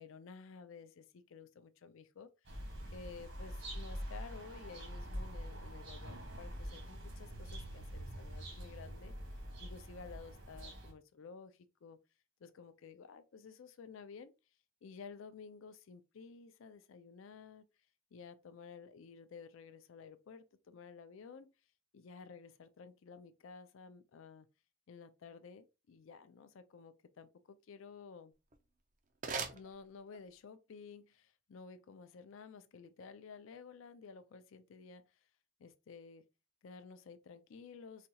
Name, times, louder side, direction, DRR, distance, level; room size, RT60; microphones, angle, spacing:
voice 1, 0.0-2.3 2.9-9.1 9.6-12.0 12.4-14.3 14.8-17.7 18.1-21.5 21.9-24.5 24.9-28.3 29.5-35.3 35.6-36.3 36.6-38.1, left 5 dB, 75° left, 0.4 m, -53 dB
sound 1, 2.4-10.9, equal, 65° right, 1.4 m, -45 dB
sound 2, 28.3-30.4, right 5 dB, 40° right, 0.4 m, -44 dB
4.1 x 2.3 x 2.7 m
head